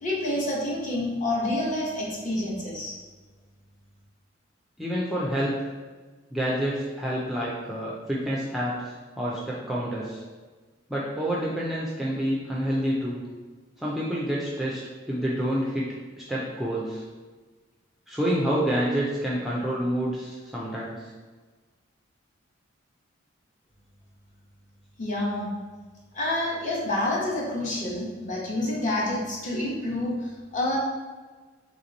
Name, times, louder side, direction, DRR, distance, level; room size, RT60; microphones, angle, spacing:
voice 1, 0.0-2.9 25.0-25.5 26.1-30.8, left 1 dB, 40° left, -4 dB, 0.9 m, -28 dB
voice 2, 4.8-5.7 6.3-10.2 10.9-13.2 13.8-17.0 18.1-21.1, equal, ahead, -6 dB, 0.4 m, -28 dB
3.2 x 2.9 x 3.9 m, 1.4 s
head